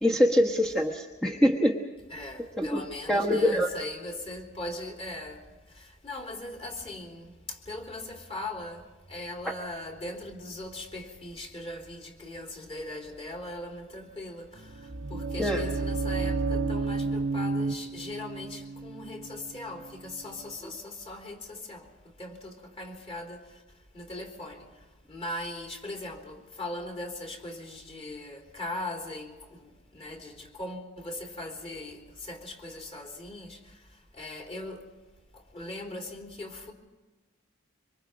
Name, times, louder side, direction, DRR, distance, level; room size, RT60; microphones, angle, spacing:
voice 1, 0.0-1.8 2.6-2.8 3.1-3.7 15.4-15.6, equal, 5° left, 1.3 m, -24 dB
voice 2, 2.1-5.4 5.7-23.6 23.9-24.7 25.1-33.9 34.1-34.9 35.3-36.7, left 1 dB, 30° left, 3.7 m, -40 dB
sound 1, 14.6-20.5, right 3 dB, 75° right, 1.2 m, -32 dB
26.0 x 25.0 x 5.2 m
head